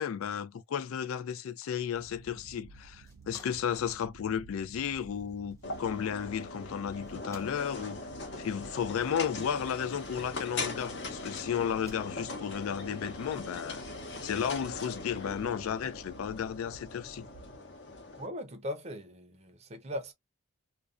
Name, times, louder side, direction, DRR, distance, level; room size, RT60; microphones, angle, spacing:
voice 1, 0.0-8.0 8.4-13.8 14.2-17.3, left 8 dB, 80° left, 0.3 m, -33 dB
sound 1, 1.9-17.6, right 4 dB, 85° right, 0.4 m, -53 dB
sound 2, 3.0-10.9 11.6-12.6, left 1 dB, 15° left, 0.9 m, -59 dB
sound 3, 5.6-18.3, left 3 dB, 55° left, 0.8 m, -41 dB
voice 2, 18.2-20.1, left 1 dB, 30° right, 0.5 m, -39 dB
2.4 x 2.2 x 2.4 m
head